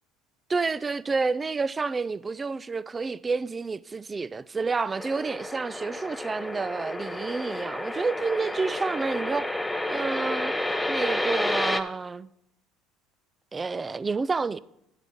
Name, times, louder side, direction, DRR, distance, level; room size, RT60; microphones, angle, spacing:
voice 1, 0.5-9.5 9.9-10.5 10.9-12.3 13.5-14.6, right 4 dB, 25° right, 0.4 m, -29 dB
sound 1, 5.0-11.8, left 1 dB, 10° left, 0.7 m, -30 dB
12.0 x 8.1 x 3.6 m
hypercardioid pair, 70°, 0 cm